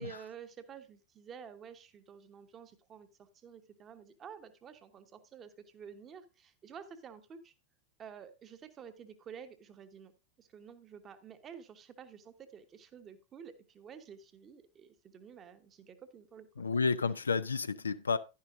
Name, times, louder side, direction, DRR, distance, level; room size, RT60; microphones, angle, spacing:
voice 1, 0.0-7.5 8.0-10.1 10.4-16.5 16.7-16.8, right 7 dB, 25° right, 1.1 m, -51 dB
voice 2, 16.6-18.2, left 4 dB, 75° left, 0.5 m, -31 dB
10.5 x 10.5 x 2.6 m
figure-of-eight pair, 90°, 0 cm